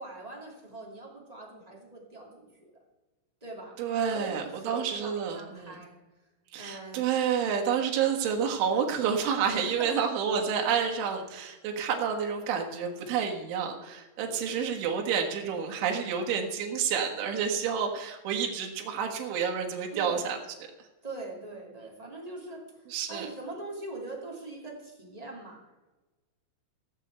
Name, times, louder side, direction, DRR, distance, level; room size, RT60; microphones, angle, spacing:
voice 1, 0.0-2.7 3.4-3.8 4.1-6.0 6.6-7.0 9.5-10.1 14.2-14.7 19.9-20.3 21.0-25.6, right 2 dB, 15° right, -2 dB, 1.3 m, -42 dB
voice 2, 3.8-5.8 6.5-20.4 22.9-23.3, right 7 dB, 80° right, 2 dB, 4.0 m, -29 dB
16.5 x 6.6 x 8.1 m, 1.1 s
omnidirectional pair, 5.4 m